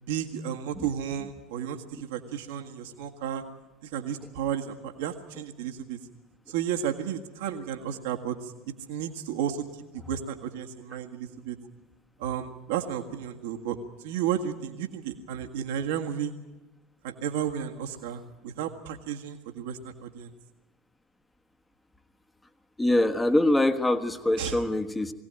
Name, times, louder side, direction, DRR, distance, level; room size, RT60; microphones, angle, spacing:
voice 1, 0.0-3.4 3.8-6.0 6.5-8.5 8.9-9.6 9.9-11.6 12.2-13.8 14.0-16.3 17.0-20.3 24.4-24.5, right 9 dB, 65° right, 3 dB, 1.7 m, -33 dB
voice 2, 22.8-25.1, left 1 dB, 10° left, 9 dB, 1.5 m, -24 dB
21.5 x 17.5 x 8.9 m, 1.1 s
figure-of-eight pair, 75°, 0 cm